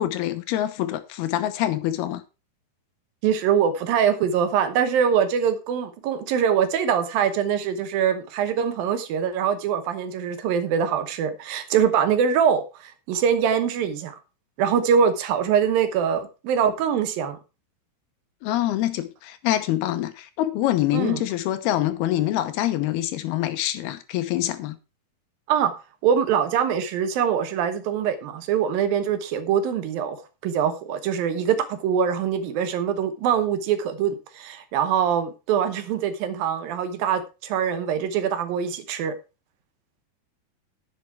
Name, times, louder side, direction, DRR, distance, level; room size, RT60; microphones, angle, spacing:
voice 1, 0.0-2.2 18.4-24.8, left 13 dB, 80° left, 2.9 m, -25 dB
voice 2, 3.2-14.2 14.6-17.4 20.9-21.2 25.5-25.7 26.0-30.2 30.4-39.1, right 8 dB, 75° right, 2.6 m, -23 dB
11.0 x 7.5 x 4.6 m
omnidirectional pair, 4.5 m